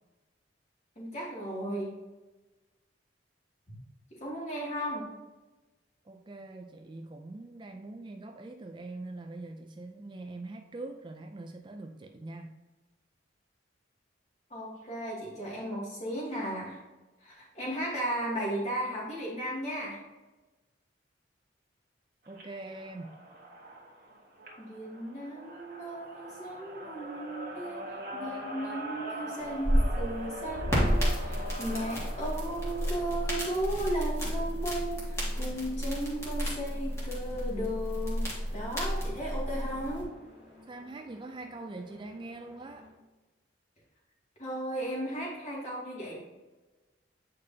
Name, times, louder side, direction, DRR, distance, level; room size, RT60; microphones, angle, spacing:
voice 1, 1.0-1.9 4.2-5.1 14.5-16.8 17.2-20.0 24.6-40.1 44.4-46.2, right 1 dB, 35° left, -4 dB, 2.2 m, -35 dB
voice 2, 6.0-12.6 22.3-23.2 40.7-42.9, right 2 dB, 25° right, 5 dB, 0.3 m, -43 dB
sound 1, 22.3-33.7, equal, 50° right, 1.4 m, -42 dB
sound 2, 29.4-40.0, equal, 15° left, 1.7 m, -31 dB
sound 3, 33.7-43.0, left 2 dB, 70° left, 2.1 m, -56 dB
8.6 x 5.1 x 2.7 m, 1.2 s
head